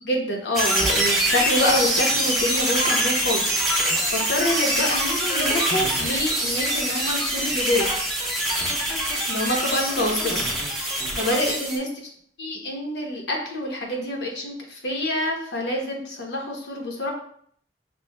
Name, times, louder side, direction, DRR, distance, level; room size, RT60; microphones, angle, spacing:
voice 1, 0.0-3.6 4.1-7.9 9.3-10.4 11.1-11.9 12.4-17.1, left 1 dB, 70° left, 0 dB, 0.9 m, -26 dB
sound 1, 0.5-11.8, right 1 dB, ahead, 0.9 m, -24 dB
5.9 x 2.3 x 2.2 m, 0.62 s
head